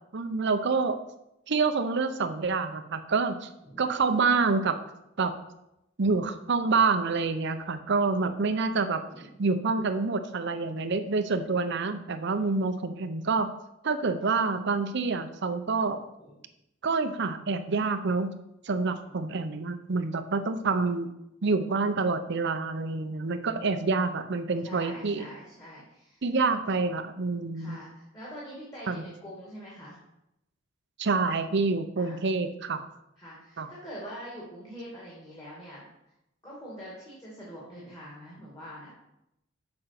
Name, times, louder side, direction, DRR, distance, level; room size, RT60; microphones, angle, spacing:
voice 1, 0.1-1.0 1.5-3.5 3.8-4.8 5.2-5.3 6.0-9.0 9.4-13.5 13.8-16.0 16.8-18.3 18.6-21.1 21.4-25.2 26.2-27.8 28.9-29.0 31.0-32.8 33.6-33.7, right 4 dB, 60° right, 9 dB, 0.7 m, -27 dB
voice 2, 8.7-9.3 12.4-12.8 16.2-16.4 18.8-19.4 24.6-26.2 27.5-30.0 32.0-32.2 33.2-35.9 36.4-38.9, equal, 20° left, -6 dB, 2.2 m, -45 dB
6.8 x 5.3 x 5.9 m, 0.85 s
head